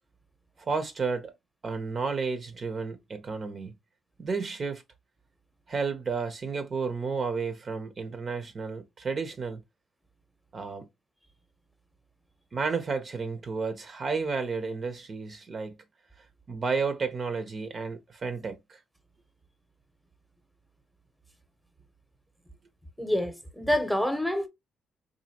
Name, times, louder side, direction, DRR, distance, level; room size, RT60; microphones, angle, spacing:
voice 1, 0.6-1.3 1.6-3.7 4.2-4.8 5.7-9.6 10.5-10.9 12.5-15.8 16.5-18.8, right 4 dB, 40° right, 0.7 m, -32 dB
voice 2, 23.0-24.5, left 1 dB, ahead, 0.9 m, -27 dB
4.0 x 2.7 x 2.8 m
cardioid pair, 90°, 0 cm